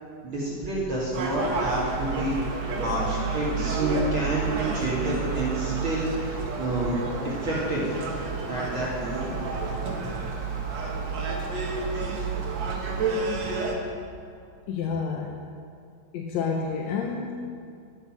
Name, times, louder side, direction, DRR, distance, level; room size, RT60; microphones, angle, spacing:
voice 1, 0.2-2.3 2.8-7.0 7.2-8.0 8.5-9.4, right 1 dB, 40° right, -6 dB, 2.9 m, -29 dB
Gull seagull, 1.1-13.8, right 4 dB, 60° right, 2.6 m, -30 dB
voice 2, 14.7-15.4 16.1-17.3, left 5 dB, 70° left, 1 dB, 1.9 m, -29 dB
13.5 x 12.0 x 6.3 m, 2.3 s
omnidirectional pair, 3.8 m